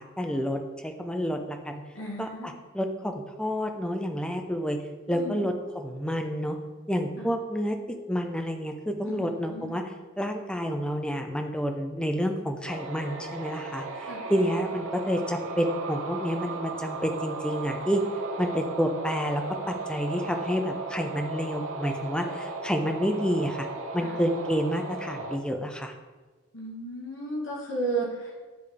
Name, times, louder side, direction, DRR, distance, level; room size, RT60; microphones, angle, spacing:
voice 1, 0.0-1.8 2.2-3.1 3.4-4.8 5.1-6.6 6.9-7.8 8.1-9.8 10.2-18.0 18.4-23.7 23.9-25.9, equal, 5° left, 4 dB, 0.4 m, -29 dB
voice 2, 1.9-2.5 5.1-5.4 7.2-7.3 9.0-9.7 14.1-14.2 24.0-24.1 26.5-28.4, right 2 dB, 70° left, -4 dB, 1.3 m, -34 dB
sound 1, 12.6-25.4, right 3 dB, 80° right, 0.6 m, -36 dB
10.0 x 3.4 x 3.4 m, 1.3 s
head